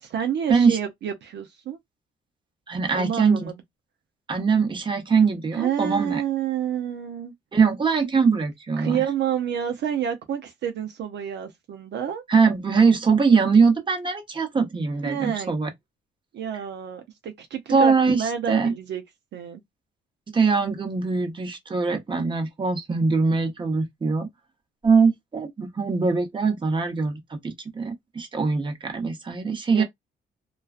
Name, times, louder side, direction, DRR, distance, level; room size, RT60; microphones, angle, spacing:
voice 1, 0.0-1.8 2.9-3.5 5.5-7.3 8.8-12.2 15.0-15.5 16.3-19.0 19.3-19.6 29.7-29.8, right 9 dB, 60° right, 0.5 m, -29 dB
voice 2, 2.7-3.5 4.3-6.2 7.5-9.0 12.3-15.7 17.7-18.7 20.3-24.3 24.8-29.8, right 5 dB, 25° right, 0.7 m, -22 dB
2.3 x 2.2 x 2.4 m
cardioid pair, 90°, 20 cm